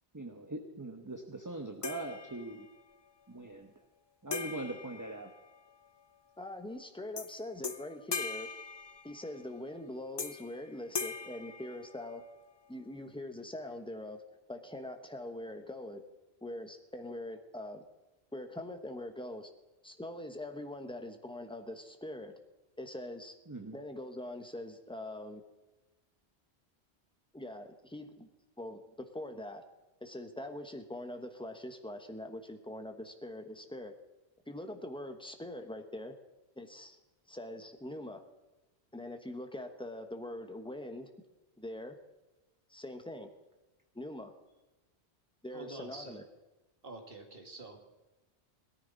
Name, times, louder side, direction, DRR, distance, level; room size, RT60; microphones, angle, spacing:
voice 1, 0.1-2.7 3.3-3.7 4.2-5.3 23.5-23.8, right 2 dB, 20° right, 3 dB, 1.0 m, -41 dB
sound 1, 1.8-2.8 4.3-5.9 7.2-7.3 7.6-9.5 10.2-10.6 10.9-12.4, left 5 dB, 35° left, 0.5 m, -41 dB
voice 2, 6.4-8.5 9.0-12.2 12.7-14.2 14.5-16.0 16.4-17.8 18.3-19.5 19.8-22.3 22.8-23.3 23.7-25.4 27.3-28.3 28.6-29.6 30.0-33.9 34.5-36.1 36.6-37.0 37.3-38.2 38.9-41.1 41.6-42.0 42.7-43.3 43.9-44.3 45.4-46.2, left 1 dB, 5° left, 6 dB, 1.2 m, -43 dB
voice 3, 45.5-46.2 46.8-47.8, right 2 dB, 55° right, 4 dB, 2.2 m, -47 dB
18.0 x 13.5 x 4.1 m, 1.1 s
omnidirectional pair, 1.1 m